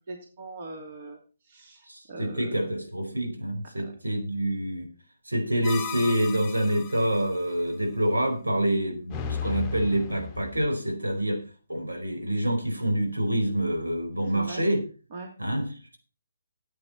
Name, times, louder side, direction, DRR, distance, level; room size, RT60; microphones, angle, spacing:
voice 1, 0.1-1.2 1.5-2.5 3.8-3.9 14.3-14.7 15.1-15.7, right 2 dB, 40° right, 3 dB, 2.8 m, -41 dB
voice 2, 1.9-4.9 5.3-11.4 11.7-14.8 15.4-15.7, right 1 dB, 75° right, 3 dB, 4.7 m, -27 dB
sound 1, 5.6-7.3 9.1-10.7, left 7 dB, 15° left, 1.1 m, -35 dB
14.5 x 8.8 x 4.3 m, 0.35 s
figure-of-eight pair, 140°, 0 cm